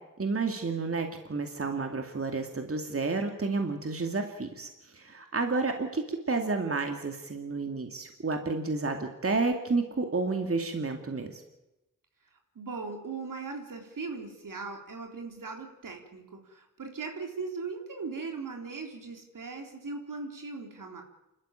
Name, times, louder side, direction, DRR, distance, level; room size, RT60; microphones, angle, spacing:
voice 1, 0.2-11.4, right 3 dB, 45° right, 5 dB, 2.4 m, -31 dB
voice 2, 12.6-21.0, right 4 dB, 75° right, 3 dB, 3.8 m, -39 dB
27.5 x 13.0 x 9.0 m, 0.98 s
cardioid pair, 60°, 32 cm